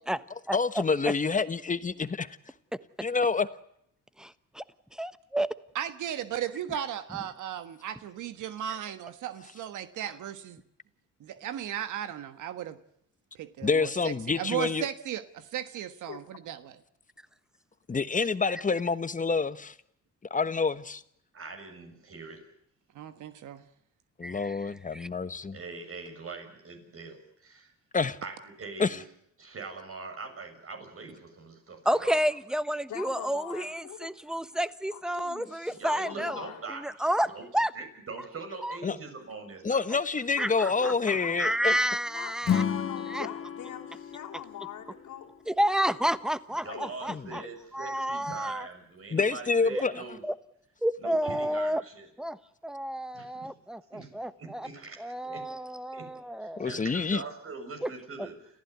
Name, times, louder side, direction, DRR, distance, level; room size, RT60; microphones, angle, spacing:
voice 1, 0.5-2.3 3.0-3.5 13.6-14.8 17.9-19.7 20.3-21.0 24.2-25.6 27.9-28.2 28.8-29.0 38.8-39.0 39.6-41.8 47.1-47.2 49.1-49.9 56.6-57.2, left 4 dB, 25° left, 13 dB, 1.3 m, -27 dB
voice 2, 4.2-4.6 4.9-5.5 24.2-25.1 31.8-36.4 36.8-37.7 38.6-38.8 40.4-40.7 41.4-42.6 43.1-43.3 45.5-47.4 47.7-48.7 49.7-49.8 50.2-50.3 50.8-51.8 52.2-52.4 52.6-54.7 55.0-56.6 57.8-57.9, equal, ahead, 14 dB, 1.1 m, -30 dB
voice 3, 5.7-10.6 11.2-12.8 13.3-16.8 22.9-23.6, right 10 dB, 80° right, 11 dB, 1.5 m, -36 dB
voice 4, 14.0-14.4 16.1-16.2 32.9-34.1 34.9-36.6 40.4-41.5 42.1-45.3 45.8-45.9 46.6-46.9, left 10 dB, 75° left, -1 dB, 3.1 m, -43 dB
voice 5, 21.3-22.5 25.5-27.7 28.2-29.0 29.4-32.4 35.8-37.5 37.7-39.9 40.4-40.5 40.8-40.9 46.6-50.2 51.0-52.1 53.1-53.5 53.9-54.1 54.4-55.5 55.9-56.1 56.4-58.6, right 4 dB, 45° right, 5 dB, 6.7 m, -42 dB
Acoustic guitar / Strum, 42.4-45.7, left 8 dB, 45° left, 1.8 m, -32 dB
29.0 x 15.0 x 9.5 m, 0.75 s
cardioid pair, 90°, 30 cm